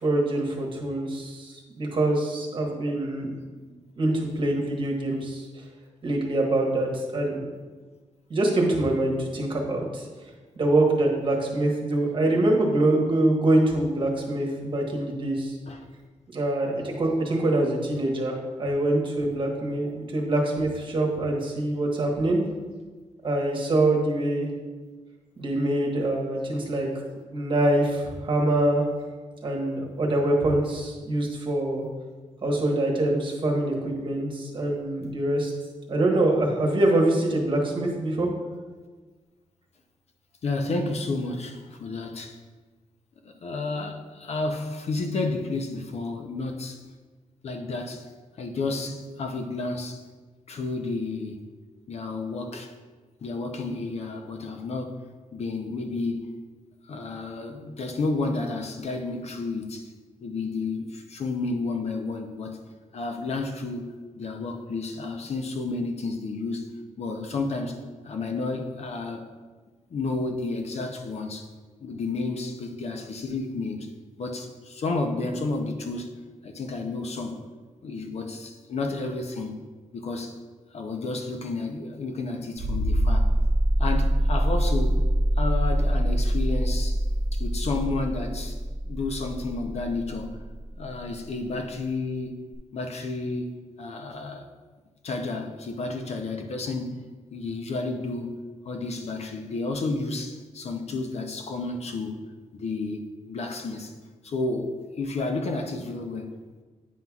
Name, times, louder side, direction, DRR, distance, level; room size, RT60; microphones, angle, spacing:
voice 1, 0.0-1.5 1.8-3.3 4.0-5.4 6.0-7.4 8.3-10.0 10.6-15.5 16.3-22.4 23.2-24.5 25.4-26.9 27.3-28.8 29.4-31.8 32.4-35.5 35.9-38.3, right 1 dB, 40° right, -1 dB, 1.2 m, -24 dB
voice 2, 40.4-42.4 43.2-46.8 47.4-48.1 48.4-50.0 50.5-51.4 51.9-52.7 53.2-54.9 55.3-56.3 56.9-59.9 60.2-62.6 62.9-66.7 67.0-69.3 69.9-71.5 71.8-73.9 74.2-76.2 76.4-77.4 77.8-79.6 79.9-80.4 80.7-83.3 83.8-85.0 85.4-87.0 87.3-88.6 88.9-90.4 90.8-92.4 92.7-94.5 95.0-102.2 102.5-103.0 103.3-103.9 104.2-106.3, left 3 dB, 55° left, 4 dB, 0.6 m, -31 dB
sound 1, 82.6-91.0 92.5-92.6, right 1 dB, 65° right, 0.6 m, -24 dB
9.1 x 5.4 x 2.4 m, 1.3 s
wide cardioid pair, 155°, 13 cm